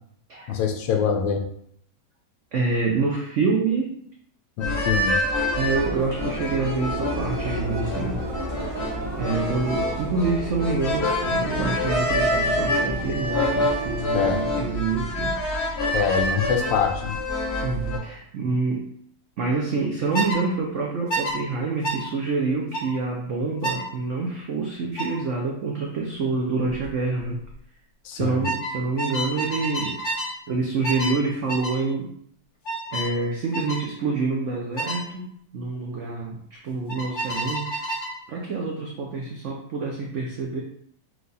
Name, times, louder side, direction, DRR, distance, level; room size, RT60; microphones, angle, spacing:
voice 1, 0.5-1.4 4.6-5.2 14.1-14.4 15.9-17.2 28.0-28.4, left 6 dB, 90° left, 5 dB, 1.4 m, -24 dB
voice 2, 2.5-4.0 5.6-8.2 9.2-15.4 17.6-18.9 19.4-27.4 28.1-30.0 30.5-32.1 32.9-37.7 38.3-40.6, right 4 dB, 80° right, -1 dB, 0.6 m, -27 dB
sound 1, 4.6-18.0, left 1 dB, 40° left, 1.3 m, -27 dB
sound 2, 5.2-14.4, equal, 30° right, 0.4 m, -34 dB
sound 3, 20.1-20.4 21.1-21.4 21.8-22.0 22.7-22.9 23.6-23.9 25.0-25.2 26.6-26.9 27.2-27.5 28.4-30.4 30.8-31.2 31.5-31.8 32.7-33.1 33.5-33.8 34.8-35.0 36.9-38.2, right 1 dB, 60° left, 1.4 m, -29 dB
4.7 x 2.3 x 3.9 m, 0.68 s
omnidirectional pair, 2.0 m